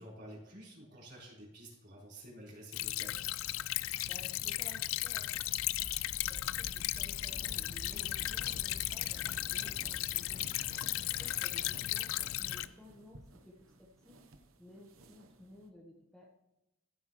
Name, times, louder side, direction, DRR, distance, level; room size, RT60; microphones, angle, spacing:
voice 1, 0.0-3.2, right 1 dB, 55° right, -5 dB, 4.2 m, -51 dB
Stream / Trickle dribble, 2.7-12.7, left 15 dB, 80° left, 0.4 m, -36 dB
voice 2, 4.1-5.4 6.3-10.4 10.8-14.2 14.6-16.3, left 1 dB, ahead, -3 dB, 1.2 m, -55 dB
sound 1, 5.3-12.1, left 1 dB, 45° left, 1.0 m, -50 dB
sound 2, 8.5-15.7, right 2 dB, 90° right, 1.0 m, -58 dB
14.5 x 7.6 x 3.1 m, 0.92 s
head